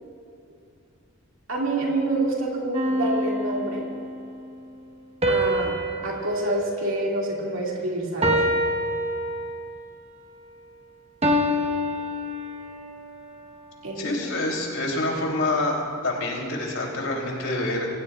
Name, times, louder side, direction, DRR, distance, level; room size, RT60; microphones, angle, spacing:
voice 1, 1.5-3.9 5.3-5.8 6.0-8.4 13.8-14.3, right 2 dB, 75° right, -3 dB, 2.5 m, -27 dB
sound 1, 2.7-4.2 5.2-7.7 8.2-9.8 11.2-12.9, equal, 30° right, 1.3 m, -26 dB
voice 2, 14.0-17.9, left 2 dB, 90° left, -1 dB, 3.4 m, -27 dB
26.0 x 16.0 x 2.5 m, 2.5 s
head